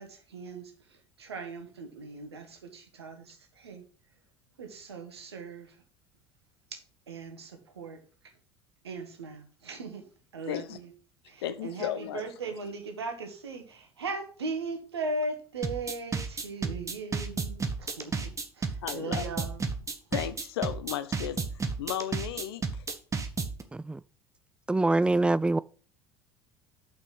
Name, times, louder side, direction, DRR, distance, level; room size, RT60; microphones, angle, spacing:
voice 1, 0.0-3.8 4.6-5.8 6.7-8.0 8.8-10.0 10.3-10.9 11.3-19.6, right 3 dB, 80° right, 1.7 m, -39 dB
voice 2, 10.5-10.8 11.4-12.2 18.8-19.3 20.1-21.4 21.8-22.8, left 11 dB, 70° left, 0.8 m, -34 dB
sound 1, 15.6-23.6, right 4 dB, 25° right, 1.5 m, -32 dB
voice 3, 24.7-25.6, right 2 dB, 10° right, 0.3 m, -24 dB
6.7 x 5.9 x 5.9 m
figure-of-eight pair, 70°, 13 cm